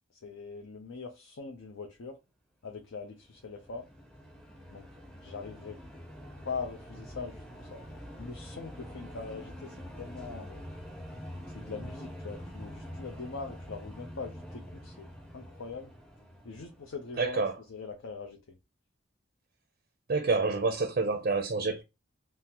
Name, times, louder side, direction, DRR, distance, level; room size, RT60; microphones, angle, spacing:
voice 1, 0.1-2.2 2.6-3.9 4.7-4.9 5.2-5.8 6.4-7.8 8.2-10.6 11.5-15.9 16.4-18.6, left 4 dB, 80° left, 0.6 m, -42 dB
sound 1, 3.1-17.6, equal, 5° left, 0.5 m, -46 dB
voice 2, 17.2-17.5 20.1-21.8, right 4 dB, 45° right, 0.4 m, -28 dB
3.6 x 2.1 x 2.8 m
head